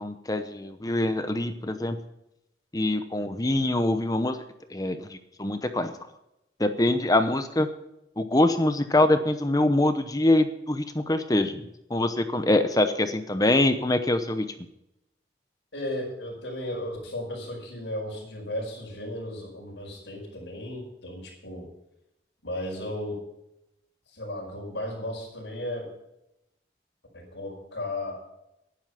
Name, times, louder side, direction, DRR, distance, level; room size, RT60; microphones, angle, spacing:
voice 1, 0.0-2.0 2.7-4.4 4.7-5.9 6.6-7.7 8.2-11.6 11.9-14.4, left 1 dB, 20° left, 9 dB, 0.8 m, -24 dB
voice 2, 15.7-21.7 22.4-23.2 24.1-25.9 27.1-28.2, left 1 dB, 85° left, -2 dB, 5.1 m, -35 dB
11.0 x 10.0 x 5.7 m, 0.86 s
head